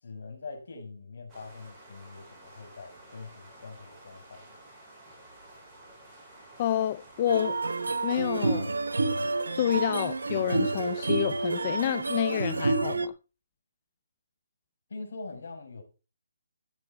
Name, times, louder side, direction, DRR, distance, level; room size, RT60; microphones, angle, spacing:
voice 1, 0.0-4.6 14.9-15.8, left 3 dB, 65° left, 6.3 m, -43 dB
sound 1, 1.3-12.7, right 1 dB, 10° right, 7.8 m, -52 dB
voice 2, 6.6-7.6 8.0-8.7 9.5-13.1, left 12 dB, 30° left, 0.5 m, -29 dB
sound 2, 7.3-13.1, right 3 dB, 85° right, 1.1 m, -29 dB
14.5 x 8.4 x 4.4 m
hypercardioid pair, 160°, 0 cm